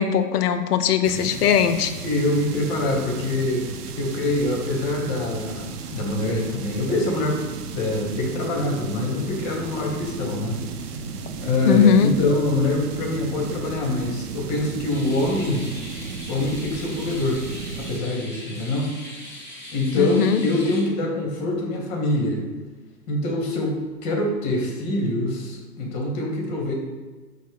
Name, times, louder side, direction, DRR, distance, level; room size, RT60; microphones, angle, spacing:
voice 1, 0.0-1.9 11.7-12.1 20.0-20.4, left 8 dB, 75° left, 9 dB, 0.5 m, -19 dB
sound 1, 1.0-18.0, right 5 dB, 75° right, 0.6 m, -35 dB
voice 2, 2.0-5.7 5.9-7.4 7.7-10.6 11.4-15.7 16.3-17.4 17.8-18.9 19.7-22.4 23.1-26.7, left 1 dB, 30° left, 1 dB, 0.9 m, -25 dB
sound 2, 14.9-20.8, left 1 dB, 5° left, 0.5 m, -40 dB
5.1 x 2.1 x 3.3 m, 1.3 s
hypercardioid pair, 120°, 47 cm